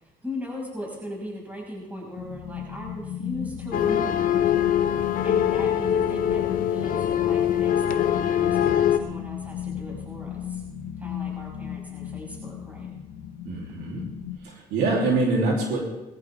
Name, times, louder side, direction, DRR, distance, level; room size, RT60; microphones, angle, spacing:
voice 1, 0.2-4.3 5.2-10.6 11.0-12.9, equal, 10° right, -3 dB, 6.0 m, -38 dB
sound 1, 2.2-14.4, left 10 dB, 85° left, 1.7 m, -35 dB
sound 2, 3.7-9.0, left 10 dB, 55° left, 0.9 m, -23 dB
voice 2, 13.5-14.0 14.4-15.9, right 2 dB, 85° right, -2 dB, 3.3 m, -25 dB
20.5 x 14.0 x 3.6 m, 1.0 s
cardioid pair, 110°, 17 cm